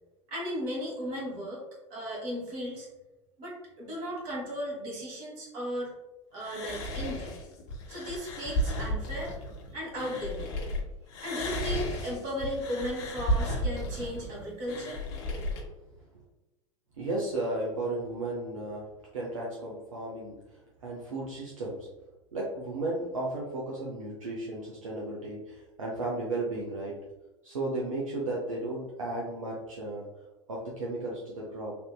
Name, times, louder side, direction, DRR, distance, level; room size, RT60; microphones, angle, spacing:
voice 1, 0.3-1.6 1.9-2.9 3.4-5.9 6.3-7.3 7.9-9.3 9.7-10.5 11.2-15.4, equal, 50° right, -3 dB, 1.5 m, -36 dB
sound 1, 6.4-10.8 11.1-15.6, equal, 50° left, 0.7 m, -33 dB
voice 2, 17.0-21.9 22.3-27.0 27.4-30.0 30.5-31.8, right 2 dB, 80° right, -4 dB, 0.6 m, -34 dB
3.4 x 2.7 x 2.3 m, 1.0 s
figure-of-eight pair, 80°, 17 cm